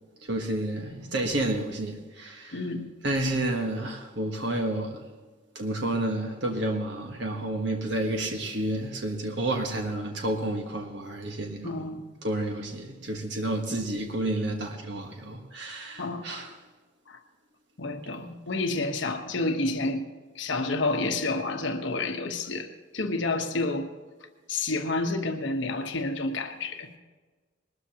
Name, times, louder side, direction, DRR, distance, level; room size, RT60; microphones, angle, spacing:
voice 1, 0.2-2.6 3.0-5.1 5.5-11.7 12.2-16.5, right 1 dB, 65° right, 1.5 m, -30 dB
voice 2, 2.5-2.9 11.6-12.0 16.0-16.6 17.1-17.2 17.8-20.1 20.3-22.7 22.9-23.9 24.5-26.9, left 2 dB, 70° left, 1.2 m, -29 dB
20.5 x 13.0 x 3.0 m
head